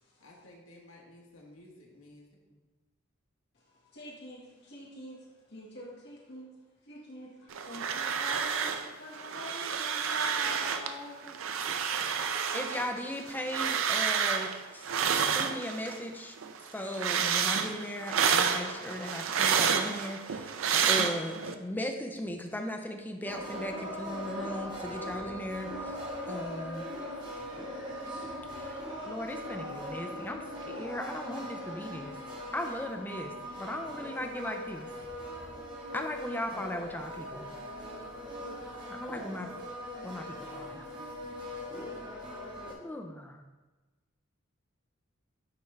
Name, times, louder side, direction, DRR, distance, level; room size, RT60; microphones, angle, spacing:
voice 1, 0.2-2.3, left 1 dB, 80° left, -2 dB, 1.3 m, -54 dB
voice 2, 3.7-6.5 6.9-11.3, left 1 dB, 55° left, -4 dB, 1.7 m, -46 dB
sound 1, 7.5-8.9 9.1-10.9 11.3-16.0 16.4-21.5, right 7 dB, 75° right, 0.5 m, -29 dB
voice 3, 12.5-16.4 16.7-20.6 20.9-26.0 26.3-26.9 28.6-28.8 29.1-32.2 32.5-34.9 35.9-37.5 38.9-39.5 40.0-40.9 42.8-43.4, left 1 dB, 10° left, 4 dB, 0.5 m, -38 dB
sound 2, 23.2-42.7, equal, 25° right, 1.3 m, -40 dB
9.5 x 3.5 x 3.3 m, 1.2 s
head